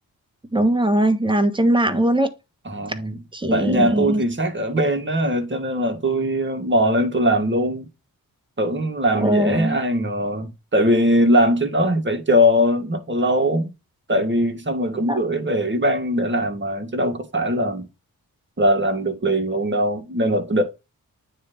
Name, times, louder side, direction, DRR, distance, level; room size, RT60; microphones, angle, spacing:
voice 1, 0.5-2.3 3.3-4.2 9.2-9.8 15.1-15.2, right 1 dB, 15° right, 1.4 m, -20 dB
voice 2, 2.7-3.2 3.5-7.9 8.6-13.7 14.1-17.9 18.6-20.6, equal, 35° right, 2.0 m, -21 dB
9.5 x 3.5 x 5.4 m
cardioid pair, 65°, 35 cm